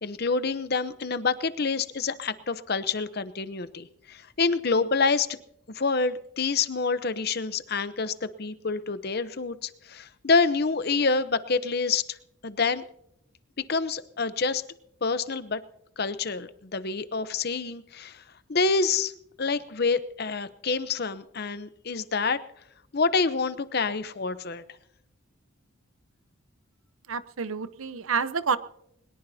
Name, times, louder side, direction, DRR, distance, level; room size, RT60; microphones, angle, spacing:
voice 1, 0.0-5.3 5.7-12.2 12.4-12.8 13.7-14.6 15.0-15.6 16.0-18.2 18.5-19.1 19.4-22.4 22.9-24.6, left 4 dB, 45° left, 13 dB, 0.7 m, -27 dB
voice 2, 27.1-28.6, right 5 dB, 75° right, 13 dB, 0.8 m, -28 dB
22.5 x 20.5 x 2.8 m, 0.76 s
head